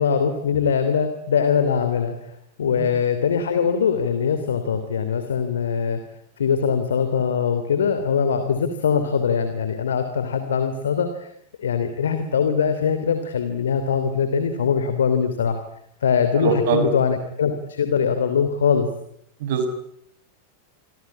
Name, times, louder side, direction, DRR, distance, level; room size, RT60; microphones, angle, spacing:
voice 1, 0.0-2.1 2.6-6.0 6.4-11.3 11.6-15.6 16.0-18.9, left 6 dB, 65° left, 9 dB, 3.0 m, -22 dB
voice 2, 16.4-16.9 19.4-19.7, right 5 dB, 55° right, 8 dB, 6.2 m, -22 dB
28.0 x 23.5 x 8.7 m, 0.72 s
figure-of-eight pair, 90°, 0 cm